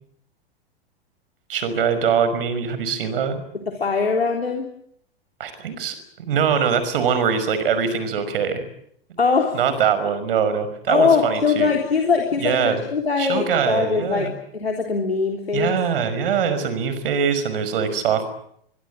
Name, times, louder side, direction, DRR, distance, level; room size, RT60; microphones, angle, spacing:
voice 1, 1.5-3.4 5.4-8.6 9.5-11.7 12.4-12.8 13.2-14.3 15.5-18.3, right 7 dB, 65° right, 12 dB, 5.7 m, -22 dB
voice 2, 3.8-4.7 9.2-9.6 10.9-15.8, left 5 dB, 85° left, 2 dB, 3.7 m, -21 dB
23.5 x 23.5 x 9.1 m, 0.72 s
figure-of-eight pair, 100°, 30 cm